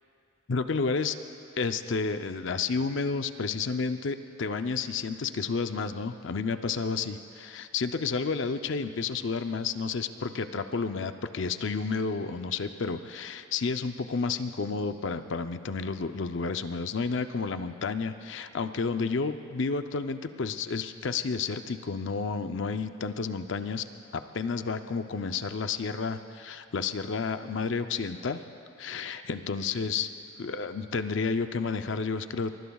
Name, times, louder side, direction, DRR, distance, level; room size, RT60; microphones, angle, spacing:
voice 1, 0.5-1.2 1.6-23.9 24.1-28.4 28.8-30.1 30.4-32.6, left 4 dB, 60° left, 9 dB, 0.5 m, -31 dB
24.0 x 23.0 x 2.3 m, 2.7 s
head